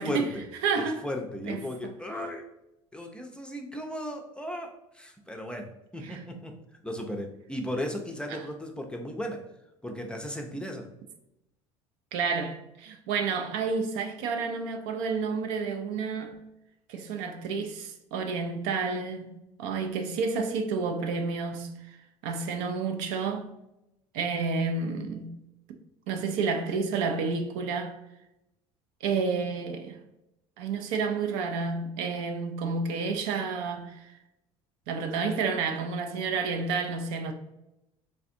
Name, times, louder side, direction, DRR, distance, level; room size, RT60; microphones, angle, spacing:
voice 1, 0.0-0.4 0.8-2.5 2.9-6.6 6.8-9.4 9.8-10.9, left 1 dB, 5° left, 0.5 m, -36 dB
voice 2, 0.6-1.0 1.5-1.6 6.0-6.2 8.3-8.4 12.1-16.3 16.9-21.7 22.2-23.6 24.1-25.4 26.1-27.9 29.0-30.0 30.6-34.1 34.9-37.3, right 5 dB, 65° right, 0.5 m, -30 dB
3.3 x 2.4 x 2.6 m
hypercardioid pair, 65°, 17 cm